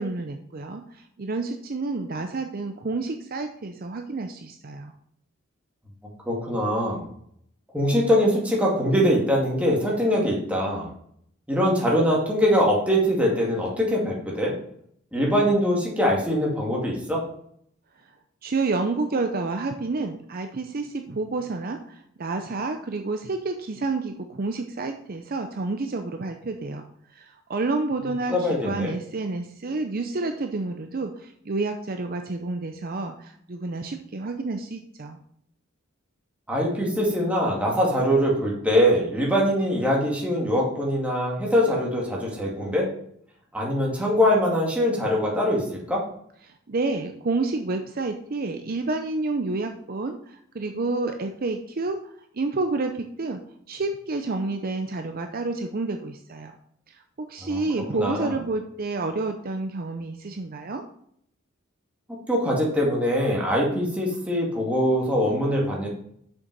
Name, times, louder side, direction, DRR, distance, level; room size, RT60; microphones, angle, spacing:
voice 1, 0.0-4.9 18.4-35.2 46.4-52.0 52.3-53.4 53.7-56.6 56.9-60.8, right 3 dB, 45° right, 6 dB, 0.6 m, -29 dB
voice 2, 6.3-7.0 7.7-10.9 11.5-14.5 15.1-17.2 28.3-28.9 36.5-42.9 43.5-46.0 57.4-57.6 57.9-58.3 62.3-65.9, equal, 5° right, -3 dB, 2.3 m, -23 dB
6.7 x 6.0 x 5.3 m, 0.68 s
head